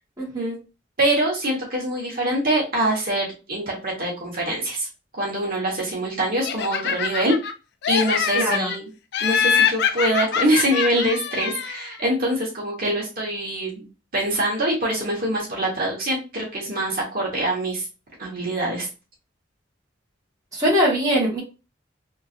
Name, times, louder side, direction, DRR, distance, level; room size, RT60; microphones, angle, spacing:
voice 1, 0.2-0.6 8.3-8.7 20.5-21.4, equal, 20° right, -5 dB, 1.6 m, -21 dB
voice 2, 1.0-4.9 5.1-7.4 7.9-8.9 9.2-13.8 14.1-17.8 18.2-18.9, right 1 dB, 50° right, -4 dB, 1.4 m, -24 dB
Laughter, 6.4-7.5 7.8-8.8 9.1-11.9, left 7 dB, 60° left, 0.4 m, -24 dB
3.7 x 2.9 x 2.6 m, 0.31 s
head